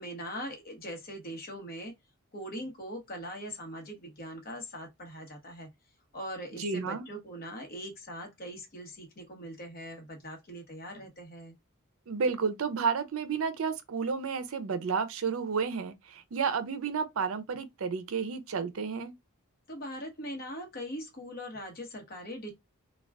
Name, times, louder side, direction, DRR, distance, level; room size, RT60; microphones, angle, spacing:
voice 1, 0.0-1.9 2.3-5.7 6.1-11.5 19.7-22.5, equal, 45° left, 0.9 m, -41 dB
voice 2, 6.6-7.1 12.1-19.1, right 5 dB, 70° right, 0.5 m, -31 dB
2.4 x 2.2 x 3.3 m
head